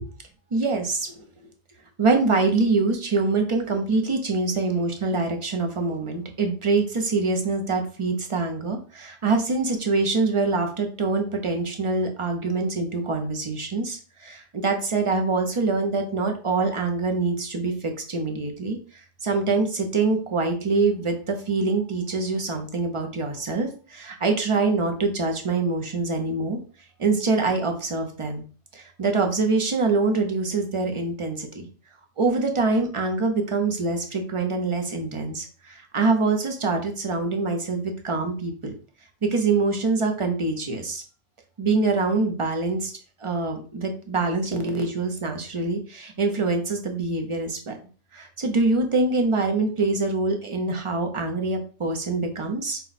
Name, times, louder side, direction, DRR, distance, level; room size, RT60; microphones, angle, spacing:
voice 1, 0.5-1.1 2.0-18.8 19.2-26.6 27.0-28.4 28.7-31.7 32.2-38.7 39.3-41.0 41.6-42.9 43.2-47.8 48.1-52.8, right 3 dB, 35° right, 4 dB, 0.6 m, -25 dB
4.2 x 2.2 x 4.0 m, 0.39 s
omnidirectional pair, 1.2 m